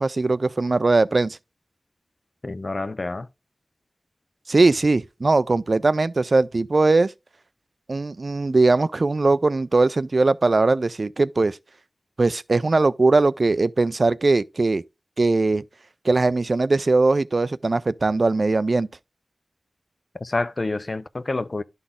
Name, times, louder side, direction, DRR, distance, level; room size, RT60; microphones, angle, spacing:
voice 1, 0.0-1.4 4.5-7.1 7.9-11.6 12.2-14.8 15.2-15.6 16.0-18.9, right 3 dB, 60° right, 0.3 m, -20 dB
voice 2, 2.4-3.3 20.1-21.6, left 2 dB, 50° left, 0.4 m, -28 dB
11.0 x 4.0 x 3.6 m
wide cardioid pair, 55°, 0 cm